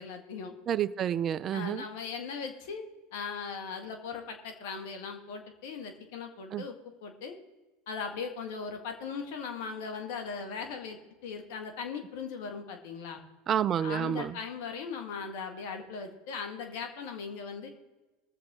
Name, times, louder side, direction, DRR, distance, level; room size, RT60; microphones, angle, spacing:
voice 1, 0.0-0.5 1.5-2.8 3.1-6.8 7.0-7.4 7.9-11.0 11.2-13.2 13.8-17.7, left 5 dB, 70° left, 1.9 m, -38 dB
voice 2, 0.7-1.8 6.5-6.7 13.5-14.4, right 9 dB, 40° right, 0.5 m, -29 dB
21.0 x 7.2 x 3.8 m
hypercardioid pair, 90°, 0 cm